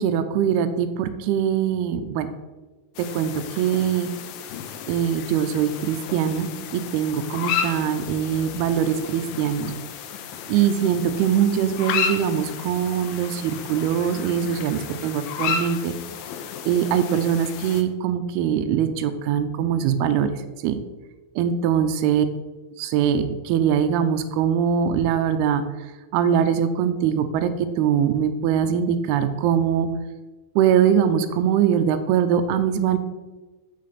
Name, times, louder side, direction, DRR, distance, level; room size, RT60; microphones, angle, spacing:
voice 1, 0.0-2.3 3.0-4.1 4.9-9.7 10.5-16.0 16.7-20.3 20.6-20.8 21.4-22.3 22.8-25.6 26.1-27.5 27.8-29.9 30.6-33.0, right 8 dB, 80° right, 8 dB, 2.4 m, -22 dB
sound 1, 3.0-17.8, left 7 dB, 85° left, 2.0 m, -33 dB
8.5 x 6.6 x 4.0 m, 1.2 s
omnidirectional pair, 4.9 m